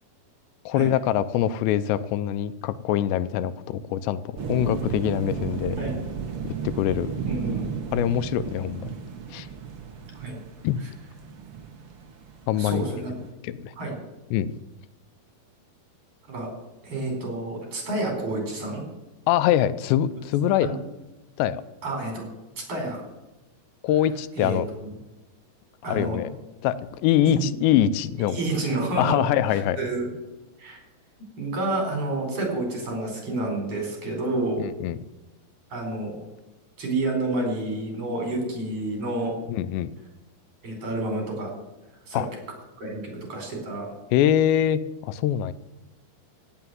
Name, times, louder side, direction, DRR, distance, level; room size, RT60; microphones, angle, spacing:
voice 1, 0.7-5.8 6.4-7.4 7.9-8.9 9.3-9.5 10.6-10.8 12.5-12.8 13.4-13.7 14.3-14.5 19.3-20.8 21.4-21.6 23.8-24.7 25.9-26.3 26.6-26.8 27.0-28.4 29.0-29.8 34.6-35.0 39.5-39.9 42.1-42.3 44.1-45.5, left 11 dB, 85° left, 14 dB, 2.8 m, -24 dB
sound 1, 4.4-13.2, right 6 dB, 70° right, 1.2 m, -34 dB
voice 2, 7.3-7.6 10.2-10.4 12.5-13.2 13.8-14.0 16.3-16.5 16.8-18.8 20.6-20.7 21.8-22.3 22.7-23.0 24.4-24.9 25.8-26.2 27.2-27.4 28.2-30.1 30.6-30.8 31.4-34.6 35.7-36.2 36.8-39.4 40.6-41.6 42.1-42.2 42.8-43.9, right 2 dB, 35° right, 2 dB, 5.1 m, -29 dB
16.5 x 6.9 x 9.2 m, 1.1 s
omnidirectional pair, 5.0 m